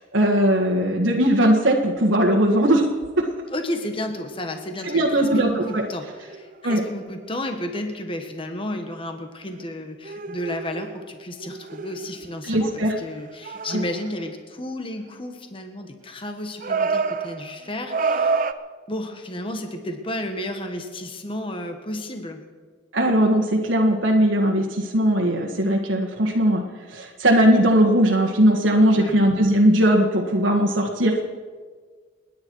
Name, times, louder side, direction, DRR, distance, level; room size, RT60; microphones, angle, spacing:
voice 1, 0.0-2.9 3.2-3.3 4.8-5.8 6.6-6.8 12.4-12.9 13.7-13.8 22.9-26.6 26.9-31.2, right 1 dB, 80° right, 0 dB, 1.7 m, -19 dB
sound 1, 3.3-3.5 4.8-7.4 7.7-7.8 9.5-9.6 10.0-12.6 13.2-14.3 16.6-18.5, right 4 dB, 45° right, 0.6 m, -29 dB
voice 2, 3.5-18.5 18.9-22.4 28.9-29.2, left 1 dB, 25° left, 5 dB, 1.6 m, -32 dB
30.0 x 10.5 x 4.7 m, 1.5 s
head